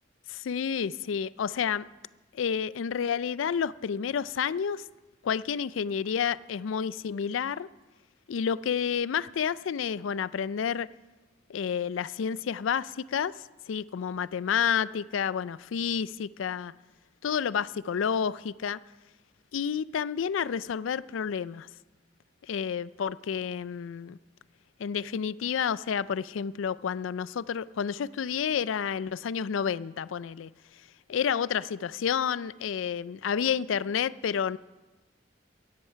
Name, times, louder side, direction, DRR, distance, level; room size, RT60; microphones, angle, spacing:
voice 1, 0.3-1.9 2.3-4.8 5.2-7.7 8.3-10.9 11.5-13.3 13.7-16.7 17.2-18.8 19.5-21.7 22.5-24.2 24.8-30.5 31.1-34.6, left 7 dB, 85° left, 0.4 m, -30 dB
15.0 x 10.5 x 5.7 m
head